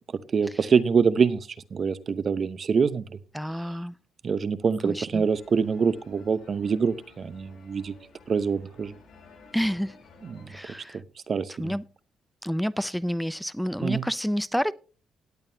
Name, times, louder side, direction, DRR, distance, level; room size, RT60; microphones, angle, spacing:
voice 1, 0.3-3.0 4.2-7.9 8.3-8.9 10.3-10.5 10.9-11.7 13.8-14.0, right 5 dB, 45° right, 0.8 m, -25 dB
voice 2, 3.3-4.0 4.8-5.3 9.5-10.0 10.5-11.0 11.6-11.8 12.4-14.7, equal, ahead, 0.5 m, -29 dB
sound 1, 5.3-10.6, left 3 dB, 80° left, 6.7 m, -53 dB
17.5 x 8.8 x 2.8 m
cardioid pair, 90°, 0 cm